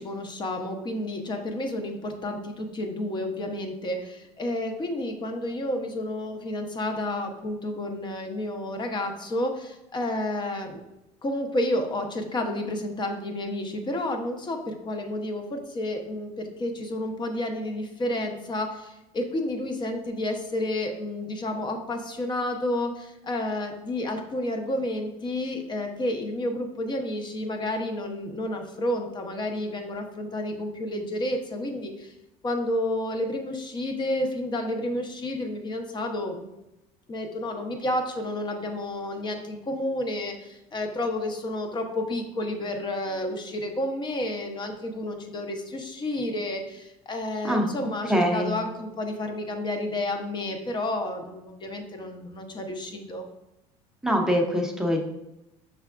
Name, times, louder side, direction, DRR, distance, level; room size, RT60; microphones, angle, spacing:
voice 1, 0.0-10.8 11.2-32.1 32.4-36.4 37.1-53.3, left 1 dB, 30° left, 4 dB, 0.8 m, -30 dB
voice 2, 48.1-48.5 54.0-55.0, equal, 5° right, 1 dB, 0.7 m, -23 dB
5.6 x 3.5 x 2.4 m, 0.93 s
supercardioid pair, 95°, 16 cm